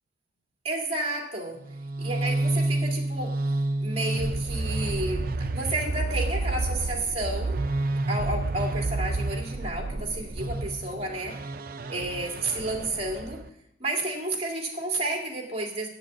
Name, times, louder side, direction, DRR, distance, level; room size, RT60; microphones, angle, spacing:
voice 1, 0.6-1.6 2.0-3.3 3.8-5.2 5.5-7.6 7.9-11.3 11.9-13.4 13.8-15.9, right 2 dB, 35° right, 1 dB, 2.4 m, -31 dB
sound 1, 1.6-13.5, right 2 dB, 50° right, 0.5 m, -29 dB
8.6 x 7.8 x 7.8 m, 0.76 s
head